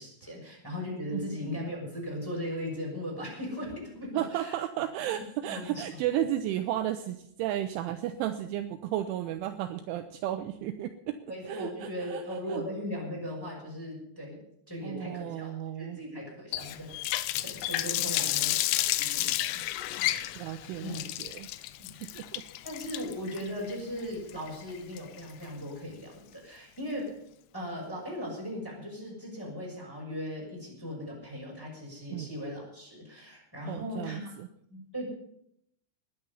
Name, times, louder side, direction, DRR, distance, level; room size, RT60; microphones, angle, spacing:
voice 1, 0.0-4.6 5.5-6.0 11.2-17.0 17.4-19.6 20.1-20.3 20.8-21.1 21.8-22.0 22.6-27.2 27.5-34.3 34.7-35.0, left 1 dB, 5° left, -2 dB, 5.5 m, -38 dB
voice 2, 4.2-11.2 11.5-12.6 14.8-16.0 20.4-21.5 22.2-22.4 32.1-32.3 33.7-34.5, right 12 dB, 80° right, 8 dB, 3.0 m, -33 dB
Water tap faucet, 16.5-25.5, left 15 dB, 85° left, 3.4 m, -31 dB
19.5 x 10.5 x 5.5 m, 0.73 s
omnidirectional pair, 5.9 m